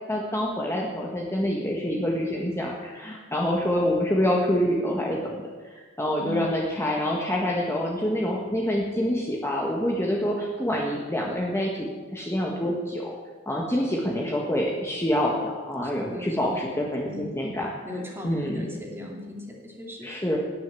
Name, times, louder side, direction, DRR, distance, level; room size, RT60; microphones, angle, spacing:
voice 1, 0.1-5.4 6.0-11.7 12.1-13.1 13.4-17.7 18.2-18.6 20.0-20.4, equal, 15° left, -2 dB, 1.6 m, -26 dB
voice 2, 6.2-6.5 15.7-17.2 17.8-20.2, left 2 dB, 10° right, -1 dB, 2.8 m, -38 dB
18.0 x 6.7 x 9.1 m, 1.4 s
head